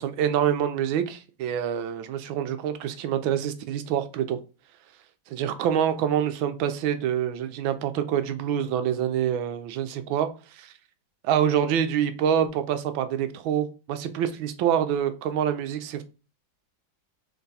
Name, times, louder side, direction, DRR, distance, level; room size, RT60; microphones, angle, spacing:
voice 1, 0.0-4.4 5.3-10.7 11.2-16.0, right 9 dB, 80° right, 1.4 m, -26 dB
3.8 x 3.5 x 4.1 m
omnidirectional pair, 2.2 m